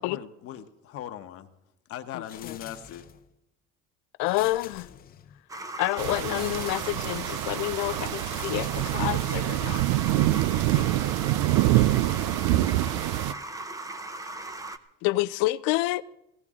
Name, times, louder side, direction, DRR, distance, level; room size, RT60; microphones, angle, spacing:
voice 1, 0.0-1.5 1.9-3.1, left 10 dB, 50° left, 1.1 m, -39 dB
voice 2, 2.1-2.6 4.2-4.9 5.8-9.8 10.7-11.0 15.0-16.0, left 18 dB, 80° left, 0.5 m, -28 dB
sound 1, 2.2-3.3 4.2-5.4 6.2-7.3 8.1-9.4, left 9 dB, 30° left, 0.7 m, -47 dB
sound 2, 5.5-14.8, right 2 dB, 10° right, 0.6 m, -38 dB
sound 3, 6.0-13.3, right 16 dB, 90° right, 0.5 m, -25 dB
voice 3, 10.8-12.4, right 7 dB, 65° right, 2.1 m, -48 dB
18.5 x 16.5 x 3.7 m
cardioid pair, 155°, 29 cm